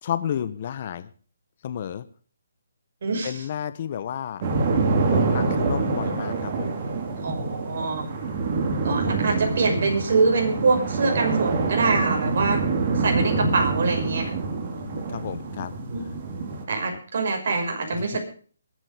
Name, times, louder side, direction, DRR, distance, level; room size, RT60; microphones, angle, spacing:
voice 1, 0.0-1.1 1.6-2.0 3.2-4.4 5.1-6.8 14.8-15.7 18.1-18.2, left 9 dB, 40° left, 12 dB, 1.2 m, -31 dB
voice 2, 3.0-3.4 7.1-8.1 8.8-12.6 12.9-14.3 15.9-16.0 16.7-18.2, right 4 dB, 55° right, 3 dB, 5.9 m, -24 dB
sound 1, 4.4-16.6, right 3 dB, 40° right, 3.6 m, -26 dB
22.5 x 8.9 x 5.1 m, 0.42 s
hypercardioid pair, 150°, 0 cm